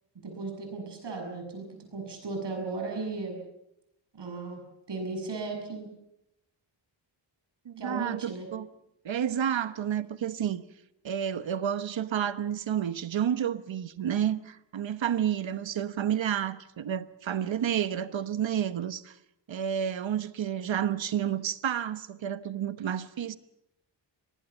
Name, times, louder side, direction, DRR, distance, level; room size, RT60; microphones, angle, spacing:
voice 1, 0.2-3.4 4.1-4.6 4.9-5.9 7.8-8.5, right 3 dB, 65° right, 7.1 m, -36 dB
voice 2, 7.6-8.7 9.0-10.6 11.0-19.2 19.5-23.4, right 9 dB, 85° right, 1.2 m, -30 dB
24.5 x 19.5 x 7.2 m
wide cardioid pair, 145°, 44 cm